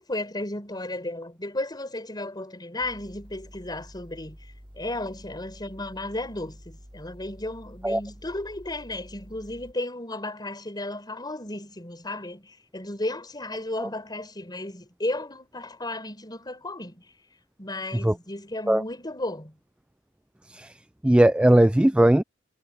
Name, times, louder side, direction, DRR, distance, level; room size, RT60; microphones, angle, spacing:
voice 1, 0.0-4.4 4.8-17.0 17.6-19.5, left 1 dB, 20° left, 4.7 m, -34 dB
sound 1, 2.8-9.7, equal, 25° right, 6.0 m, -48 dB
voice 2, 21.0-22.2, right 1 dB, 5° right, 0.3 m, -19 dB
head